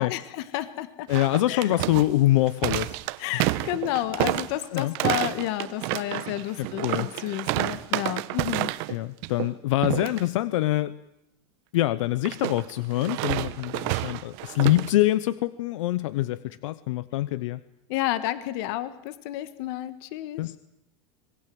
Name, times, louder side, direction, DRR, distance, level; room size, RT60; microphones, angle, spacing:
voice 1, 0.0-1.1 1.5-1.7 3.2-8.8 17.9-20.4, left 14 dB, 60° left, 12 dB, 1.5 m, -31 dB
voice 2, 1.1-3.0 4.7-4.9 6.6-7.1 8.9-10.9 11.7-17.6 20.4-20.6, left 15 dB, 85° left, 16 dB, 0.8 m, -25 dB
sound 1, 1.1-9.0 9.2-9.5 9.8-10.2 12.2-14.9, right 18 dB, 55° right, 1.0 m, -29 dB
26.0 x 20.0 x 7.8 m, 0.84 s
supercardioid pair, 155°, 16 cm